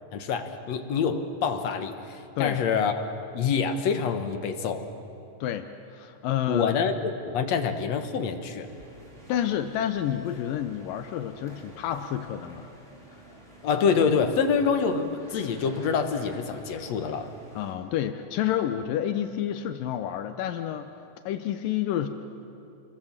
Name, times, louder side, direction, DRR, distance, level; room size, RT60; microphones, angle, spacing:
voice 1, 0.1-3.1 3.3-4.8 6.5-8.7 13.6-17.3, left 6 dB, 60° left, 7 dB, 2.2 m, -26 dB
voice 2, 5.4-6.7 9.3-12.7 17.6-20.9 21.3-22.1, left 10 dB, 80° left, 8 dB, 2.5 m, -29 dB
sound 1, 8.6-17.7, right 1 dB, 20° right, 3.9 m, -50 dB
27.5 x 22.5 x 7.4 m, 2.8 s
omnidirectional pair, 4.0 m